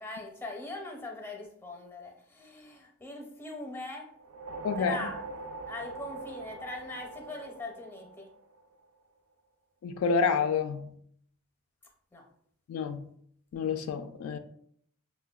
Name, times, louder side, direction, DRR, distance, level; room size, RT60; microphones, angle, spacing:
voice 1, 0.0-4.1 4.8-5.2 5.7-8.3 12.1-12.3, left 2 dB, 10° left, 1 dB, 0.5 m, -41 dB
sound 1, 4.1-8.7, right 3 dB, 90° right, 0.4 m, -42 dB
voice 2, 4.6-5.0 9.8-10.9 12.7-13.1 13.5-14.4, left 5 dB, 75° left, 9 dB, 0.3 m, -29 dB
5.5 x 2.1 x 2.2 m, 0.65 s
head